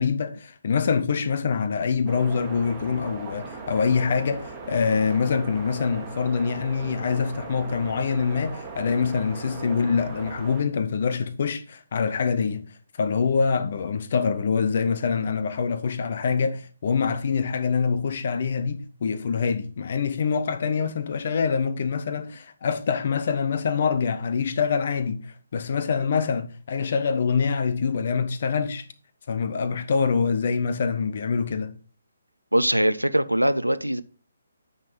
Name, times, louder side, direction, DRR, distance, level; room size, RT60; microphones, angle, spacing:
voice 1, 0.0-12.6 13.0-28.9 29.3-31.7, left 5 dB, 45° left, 0.9 m, -25 dB
sound 1, 2.1-10.6, right 4 dB, 10° right, 1.6 m, -39 dB
voice 2, 32.5-34.0, right 1 dB, 85° right, 0.6 m, -22 dB
9.2 x 4.1 x 5.4 m
figure-of-eight pair, 140°, 0 cm